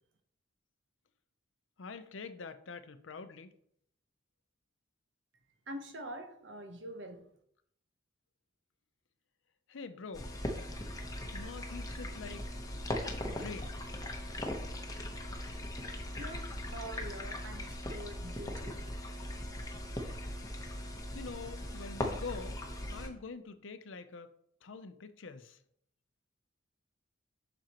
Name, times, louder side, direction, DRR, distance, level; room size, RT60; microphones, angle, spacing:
voice 1, 1.8-3.5 9.7-10.3 11.3-12.5 13.3-13.8 21.1-22.6 22.9-24.3 24.6-25.6, left 4 dB, 75° left, 0.6 m, -45 dB
voice 2, 5.7-7.3 16.2-18.8, right 1 dB, 65° right, 1.0 m, -45 dB
sound 1, 10.1-23.1, left 1 dB, 20° left, 0.9 m, -39 dB
7.5 x 6.3 x 3.0 m
head